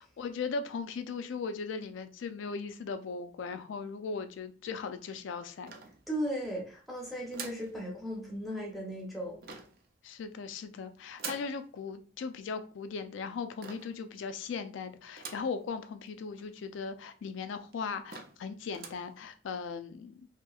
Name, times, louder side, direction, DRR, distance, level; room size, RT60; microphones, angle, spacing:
voice 1, 0.2-5.7 10.0-20.3, left 5 dB, 85° left, 9 dB, 0.3 m, -38 dB
sound 1, 5.7-6.4 7.3-7.7 9.4-9.9 11.2-11.6 13.6-14.0 15.2-15.6 16.1-16.2 16.4-16.5 17.2-17.3 17.7-17.8 18.1-18.4 18.7-19.1, right 5 dB, 50° right, 0.4 m, -44 dB
voice 2, 6.1-9.4, equal, ahead, -3 dB, 0.6 m, -36 dB
2.8 x 2.5 x 2.3 m, 0.40 s
head